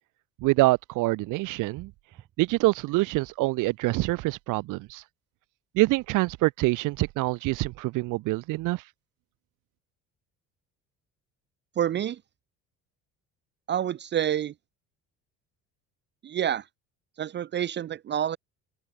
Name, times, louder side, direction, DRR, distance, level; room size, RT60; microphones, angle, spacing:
voice 1, 0.4-1.9 2.4-5.0 5.7-8.8, right 21 dB, 75° right, 1.1 m, -25 dB
voice 2, 11.8-12.2 13.7-14.5 16.2-16.7 17.2-18.4, right 10 dB, 35° right, 0.6 m, -28 dB
open air
cardioid pair, 135°, 31 cm